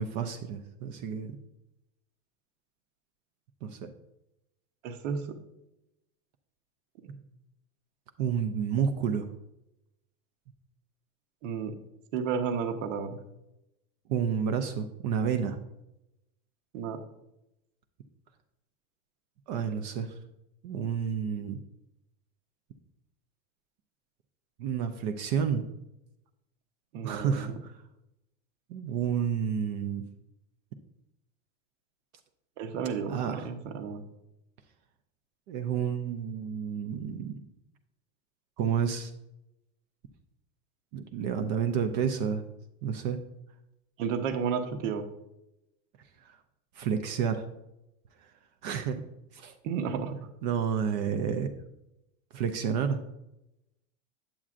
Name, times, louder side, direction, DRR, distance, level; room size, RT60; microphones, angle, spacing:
voice 1, 0.0-1.4 3.6-3.9 8.2-9.3 14.1-15.6 19.5-20.1 20.6-21.6 24.6-25.6 27.0-27.7 28.7-30.1 33.1-33.5 35.5-37.4 38.6-39.1 40.9-42.4 42.8-43.2 46.3-46.4 46.8-47.4 48.6-49.0 49.3-49.5 50.4-51.5 52.3-53.0, right 7 dB, 35° right, 8 dB, 0.4 m, -30 dB
voice 2, 4.8-5.4 11.4-11.7 12.1-13.2 16.7-17.0 26.9-27.6 32.6-34.0 44.0-45.1 49.6-50.3, right 6 dB, 70° right, 7 dB, 0.9 m, -32 dB
8.8 x 7.3 x 2.4 m, 0.89 s
supercardioid pair, 160°, 40 cm